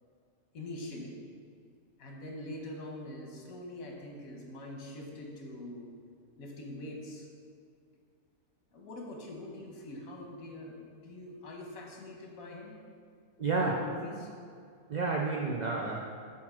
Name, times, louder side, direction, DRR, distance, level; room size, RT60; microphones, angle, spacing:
voice 1, 0.5-1.2 2.0-5.9 6.4-7.3 8.7-12.8 13.4-14.3, left 1 dB, 80° left, 0 dB, 1.5 m, -43 dB
voice 2, 13.4-13.8 14.9-16.2, right 3 dB, 60° right, -1 dB, 0.4 m, -31 dB
8.1 x 2.9 x 6.1 m, 2.3 s
omnidirectional pair, 1.4 m